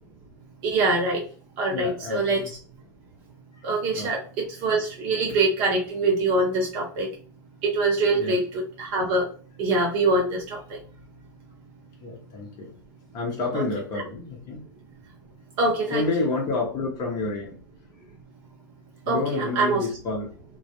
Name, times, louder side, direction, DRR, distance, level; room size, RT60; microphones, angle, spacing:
voice 1, 0.6-1.3 1.6-2.6 3.6-7.1 7.6-9.3 9.6-10.8 13.5-13.6 15.6-16.1 19.1-19.8, right 2 dB, 50° right, 0 dB, 0.5 m, -24 dB
voice 2, 1.7-2.5 3.5-3.7 3.9-4.1 8.1-8.4 12.0-12.8 13.1-14.6 15.9-17.6 19.1-20.4, left 3 dB, 40° left, -2 dB, 0.8 m, -29 dB
2.2 x 2.0 x 2.8 m, 0.39 s
hypercardioid pair, 90°, 11 cm